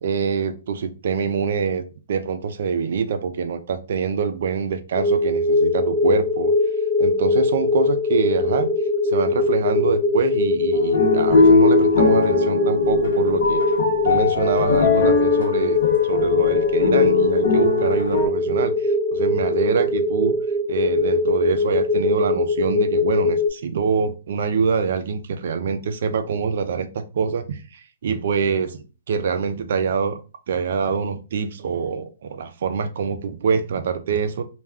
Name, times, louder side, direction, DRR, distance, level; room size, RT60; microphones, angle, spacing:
voice 1, 0.0-1.8 2.1-6.5 7.0-8.7 9.0-13.6 14.0-15.8 16.1-18.7 19.1-20.4 20.7-28.8 29.1-30.2 30.5-34.4, right 6 dB, 55° right, 9 dB, 0.4 m, -25 dB
sound 1, 5.0-23.5, left 3 dB, 30° left, 0.4 m, -21 dB
sound 2, 10.7-18.3, left 3 dB, 70° left, 0.9 m, -20 dB
2.3 x 2.2 x 3.4 m, 0.33 s
hypercardioid pair, 170°, 0 cm